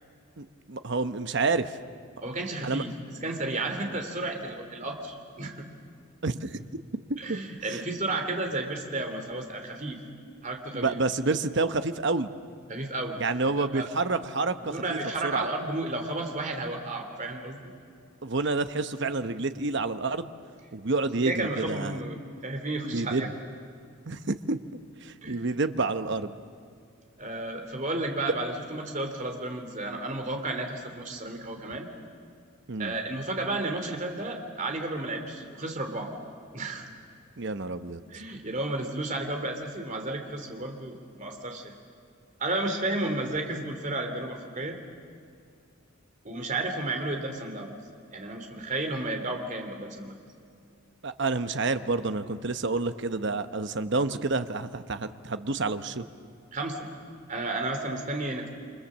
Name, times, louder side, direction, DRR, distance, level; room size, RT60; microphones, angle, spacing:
voice 1, 0.4-1.7 2.6-2.8 6.2-6.6 7.3-7.4 7.7-7.8 10.7-12.3 13.2-15.4 18.2-20.3 20.7-22.0 22.9-23.3 24.1-24.6 25.0-26.4 32.7-32.9 37.4-38.0 51.0-56.1, right 3 dB, 55° right, 10 dB, 0.9 m, -29 dB
voice 2, 2.2-2.9 3.2-5.6 7.2-10.0 10.4-11.0 12.7-13.9 14.6-17.7 21.2-23.3 25.2-25.5 27.2-31.9 32.8-36.1 36.5-36.9 38.1-41.8 42.4-44.8 46.2-47.8 48.1-50.2 56.5-56.9 57.3-58.5, right 2 dB, 35° right, 4 dB, 2.8 m, -32 dB
28.5 x 25.5 x 7.4 m, 2.3 s
head